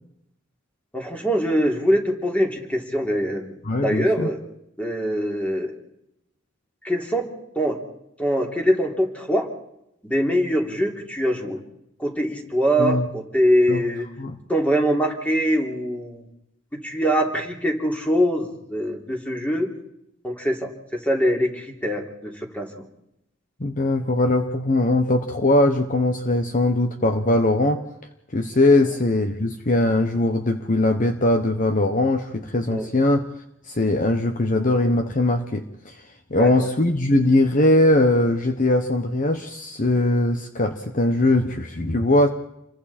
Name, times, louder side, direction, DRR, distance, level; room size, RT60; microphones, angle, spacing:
voice 1, 0.9-3.5 3.8-4.4 4.8-5.7 6.8-7.3 7.5-7.8 8.2-9.5 10.0-11.6 12.0-14.1 14.5-16.2 16.8-19.7 20.2-22.7 32.7-32.9 36.3-36.5, equal, 5° left, 1 dB, 3.3 m, -23 dB
voice 2, 3.6-4.3 12.8-13.1 13.7-13.8 14.2-14.4 23.6-27.8 28.3-33.3 33.7-35.9 36.3-42.3, left 1 dB, 45° left, 6 dB, 1.2 m, -20 dB
28.5 x 22.5 x 4.4 m, 0.81 s
head